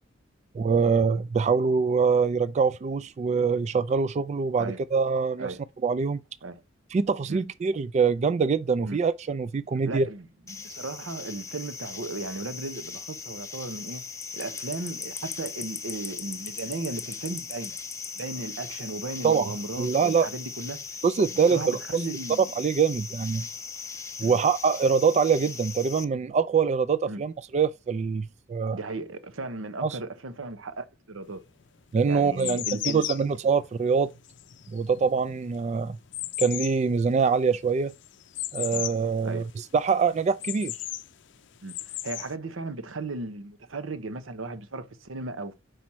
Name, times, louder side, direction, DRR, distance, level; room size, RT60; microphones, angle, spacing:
voice 1, 0.5-5.5 5.8-6.2 6.9-10.1 19.2-19.5 19.8-20.3 21.0-21.8 22.6-23.5 24.2-28.8 29.8-30.0 31.9-34.1 34.7-36.0 36.4-37.9 38.5-39.4 39.7-40.8, right 5 dB, 35° right, 0.3 m, -24 dB
voice 2, 9.9-14.0 14.3-17.8 18.1-20.8 21.3-22.5 24.2-24.4 27.1-27.2 28.7-31.4 32.0-33.0 38.7-38.8 39.2-39.5 41.6-45.5, right 3 dB, 85° right, 0.8 m, -36 dB
sound 1, 10.5-26.0, left 5 dB, 15° left, 0.5 m, -39 dB
sound 2, 31.3-31.4 32.0-39.1 39.4-39.5 39.9-41.1 41.6-42.3, left 14 dB, 65° left, 0.5 m, -36 dB
5.1 x 4.2 x 6.0 m
head